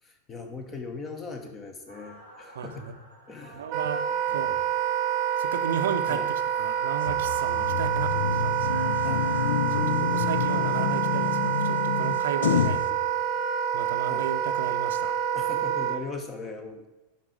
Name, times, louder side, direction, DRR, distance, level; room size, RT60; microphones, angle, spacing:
voice 1, 0.0-3.0 3.3-3.8 4.3-4.6 6.1-6.3 9.0-9.3 10.7-10.9 14.1-14.3 15.0-16.9, left 4 dB, 25° left, 5 dB, 1.3 m, -40 dB
sound 1, 1.9-9.8, right 1 dB, 85° left, 3.7 m, -48 dB
voice 2, 2.6-2.9 3.5-4.0 4.3-4.6 5.4-6.2 6.6-8.9 9.7-12.8 13.7-15.1, right 8 dB, 60° right, 10 dB, 0.7 m, -34 dB
Wind instrument woodwind instrument, 3.7-16.0, right 9 dB, 35° right, 1.0 m, -27 dB
sound 2, 7.0-12.9, left 8 dB, 60° left, 0.6 m, -28 dB
11.5 x 4.8 x 5.2 m, 1.1 s
figure-of-eight pair, 90°, 0 cm